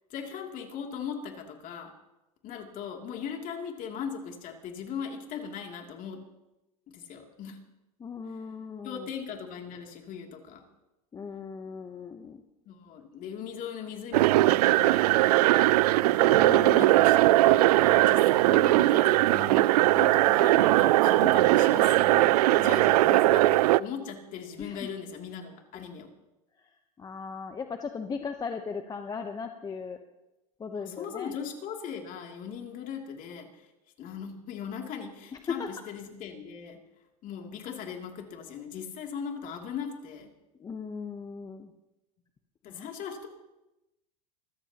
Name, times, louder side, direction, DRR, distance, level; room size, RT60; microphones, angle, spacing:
voice 1, 0.1-1.9 2.4-6.2 6.9-7.6 8.8-10.6 12.7-15.2 16.0-16.2 16.7-26.1 30.7-33.7 34.0-36.8 37.2-40.3 42.6-43.3, left 7 dB, 40° left, 2 dB, 2.8 m, -39 dB
voice 2, 8.0-9.1 11.1-12.4 16.2-16.9 24.6-24.9 27.0-30.0 30.6-31.3 35.6-35.7 40.6-41.7 42.7-42.9, left 5 dB, 20° left, 6 dB, 0.9 m, -37 dB
sound 1, 14.1-23.8, right 17 dB, 75° right, 0.4 m, -20 dB
25.5 x 14.0 x 2.9 m, 0.97 s
supercardioid pair, 115°, 20 cm